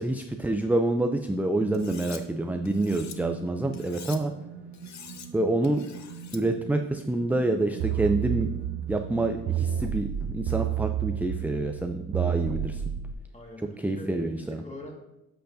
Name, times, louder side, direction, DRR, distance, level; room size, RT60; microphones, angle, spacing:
voice 1, 0.0-4.3 5.3-5.8 6.3-8.5 8.9-12.8 13.6-14.6, right 2 dB, 5° right, 5 dB, 0.4 m, -27 dB
sound 1, 1.6-9.4, right 7 dB, 75° right, 0.9 m, -44 dB
Cutlery silverware, 1.7-2.2 2.7-3.2 3.7-4.2 4.7-5.3 5.6-6.4, left 8 dB, 50° left, 0.8 m, -45 dB
sound 2, 7.8-13.1, right 10 dB, 55° right, 0.5 m, -30 dB
voice 2, 13.1-14.9, left 1 dB, 20° left, 1 dB, 1.8 m, -44 dB
7.8 x 6.5 x 2.6 m, 0.93 s
supercardioid pair, 65°, 36 cm